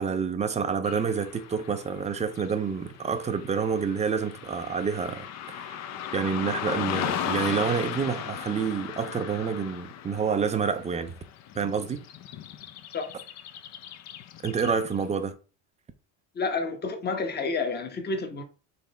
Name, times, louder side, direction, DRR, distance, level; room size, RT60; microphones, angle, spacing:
voice 1, 0.0-11.1 11.6-12.0 14.4-15.3, right 6 dB, 20° right, 0.4 m, -28 dB
Car passing by / Traffic noise roadway noise, 0.8-15.1, left 10 dB, 45° left, 0.5 m, -37 dB
voice 2, 16.3-18.4, left 4 dB, 25° left, 1.0 m, -29 dB
3.9 x 3.3 x 4.1 m
supercardioid pair, 115°, 40 cm